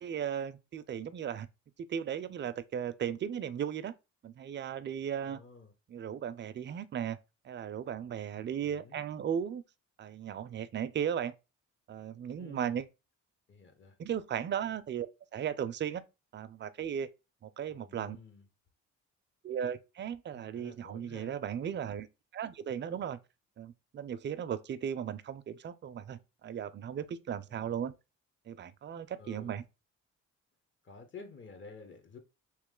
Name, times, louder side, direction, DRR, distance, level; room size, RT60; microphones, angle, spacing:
voice 1, 0.0-1.5 1.9-3.9 4.2-5.4 5.9-7.2 7.4-9.6 10.0-11.3 11.9-12.9 14.0-15.1 15.3-16.0 16.3-17.1 17.4-18.2 19.4-22.1 22.3-23.2 23.6-27.9 28.5-29.6, right 8 dB, 35° right, 0.4 m, -36 dB
voice 2, 5.3-5.7 8.3-9.1 12.3-12.8 13.5-14.0 17.7-18.4 20.3-21.3 27.5-27.8 29.2-29.6 30.8-32.2, left 4 dB, 40° left, 1.0 m, -52 dB
3.1 x 3.0 x 3.7 m
cardioid pair, 90°, 30 cm